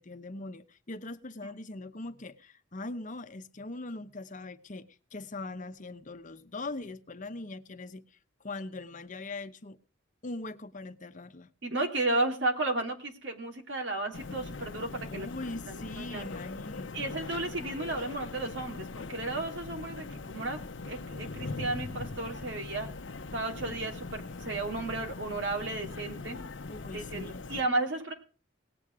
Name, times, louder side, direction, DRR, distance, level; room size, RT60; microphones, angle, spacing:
voice 1, 0.0-8.0 8.4-9.8 10.2-11.5 15.1-17.0 26.7-27.7, left 2 dB, 45° left, 0.9 m, -41 dB
voice 2, 11.6-15.3 15.9-16.3 16.9-20.6 20.8-22.9 23.3-26.4 26.9-28.1, right 2 dB, 70° right, 3.4 m, -33 dB
sound 1, 14.1-27.6, left 3 dB, 80° left, 0.8 m, -41 dB
18.5 x 8.4 x 4.8 m
head